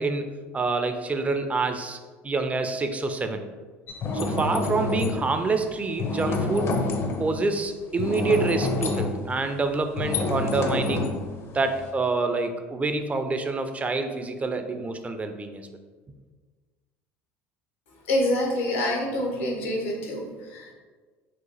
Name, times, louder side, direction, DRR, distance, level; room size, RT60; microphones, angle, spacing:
voice 1, 0.0-2.0 2.2-3.4 4.1-6.8 7.2-11.1 11.5-15.6, right 3 dB, 20° right, 7 dB, 0.4 m, -27 dB
sound 1, 3.9-5.2 6.0-7.4 8.0-11.9, left 2 dB, 40° left, 0.5 m, -28 dB
voice 2, 18.1-20.7, left 1 dB, 80° left, 0 dB, 0.7 m, -26 dB
2.8 x 2.4 x 3.8 m, 1.4 s
hypercardioid pair, 70°, 7 cm